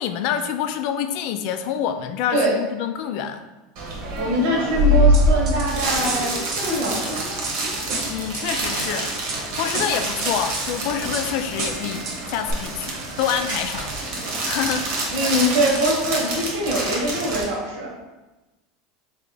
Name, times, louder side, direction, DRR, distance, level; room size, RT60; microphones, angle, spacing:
voice 1, 0.0-3.4 8.1-9.1 9.6-13.9 14.4-14.9 15.2-15.3, left 9 dB, 60° left, 8 dB, 0.3 m, -27 dB
sound 1, 3.8-17.5, right 1 dB, 65° right, 1.1 m, -25 dB
voice 2, 4.2-7.2 15.1-17.9, equal, 80° right, -2 dB, 1.4 m, -23 dB
sound 2, 5.1-5.7 6.0-7.5 7.9-8.4 8.8-9.4 9.7-10.7 11.1-11.3 11.6-12.2 12.5-12.6, right 3 dB, 40° right, 0.8 m, -31 dB
3.4 x 2.8 x 3.9 m, 1.1 s
supercardioid pair, 140°, 0 cm